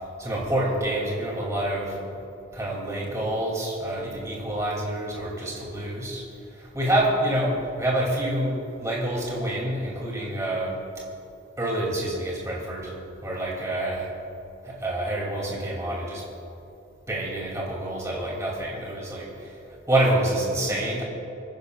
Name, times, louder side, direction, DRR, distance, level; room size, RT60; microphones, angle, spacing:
voice 1, 0.2-2.0 2.5-6.2 6.6-10.8 11.6-12.9 13.2-14.1 14.6-16.2 17.1-19.5 19.9-21.0, right 1 dB, 15° right, -4 dB, 2.7 m, -27 dB
28.5 x 10.5 x 2.4 m, 2.9 s
head